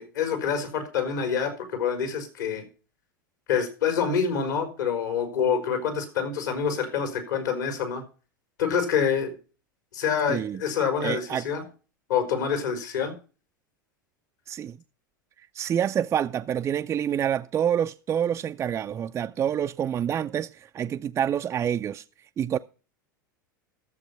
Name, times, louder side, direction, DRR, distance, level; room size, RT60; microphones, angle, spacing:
voice 1, 0.0-2.6 3.5-8.0 8.6-9.3 9.9-11.6 12.1-13.1, left 7 dB, 65° left, 4.3 m, -26 dB
voice 2, 10.3-10.6 11.0-11.5 14.5-14.8 15.5-22.0 22.4-22.6, right 9 dB, 25° right, 0.5 m, -27 dB
13.0 x 7.4 x 5.6 m
figure-of-eight pair, 85°, 11 cm